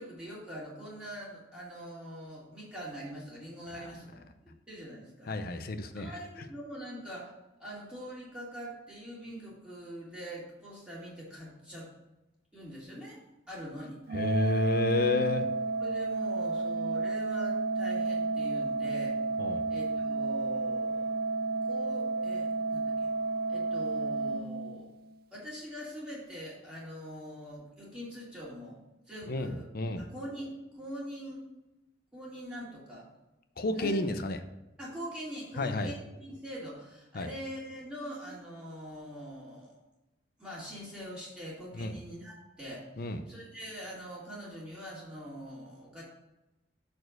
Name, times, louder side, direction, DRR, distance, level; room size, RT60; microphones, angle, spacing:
voice 1, 0.0-5.6 5.9-7.3 7.6-11.9 12.5-13.2 13.5-14.0 15.8-19.2 19.7-21.1 21.6-23.1 23.5-24.9 25.3-28.8 29.1-29.7 30.0-31.4 32.1-33.1 33.7-34.0 34.8-39.8 40.4-46.0, equal, 5° right, -8 dB, 2.3 m, -43 dB
voice 2, 5.3-6.2 14.1-15.5 19.4-19.6 29.3-30.1 33.6-34.4 35.6-35.9 37.1-37.3 41.8-42.0 43.0-43.2, left 2 dB, 55° left, 8 dB, 0.6 m, -31 dB
Organ, 14.1-25.1, right 3 dB, 55° right, 0.3 m, -31 dB
6.7 x 4.4 x 6.5 m, 0.98 s
head